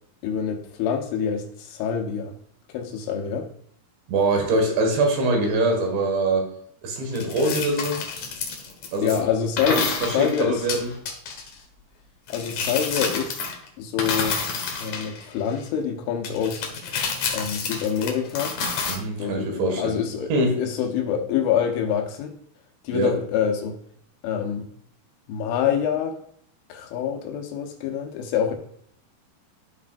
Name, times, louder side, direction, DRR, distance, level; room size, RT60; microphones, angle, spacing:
voice 1, 0.2-2.3 2.7-3.5 9.0-10.6 12.3-13.4 13.8-14.4 14.8-16.6 17.3-18.6 19.2-20.3 20.6-22.3 22.9-23.8 24.2-24.7 25.3-26.2 26.7-28.5, left 8 dB, 85° left, 4 dB, 3.6 m, -26 dB
voice 2, 4.1-6.5 6.8-8.0 8.9-9.2 9.7-10.9 18.9-20.0 20.3-20.6 22.9-23.1, right 2 dB, 75° right, 2 dB, 4.1 m, -23 dB
sound 1, 7.1-9.2 9.6-11.5 12.3-13.7 14.0-15.6 16.2-19.0, left 5 dB, 60° left, 2.1 m, -29 dB
13.0 x 5.9 x 2.5 m, 0.68 s
omnidirectional pair, 5.3 m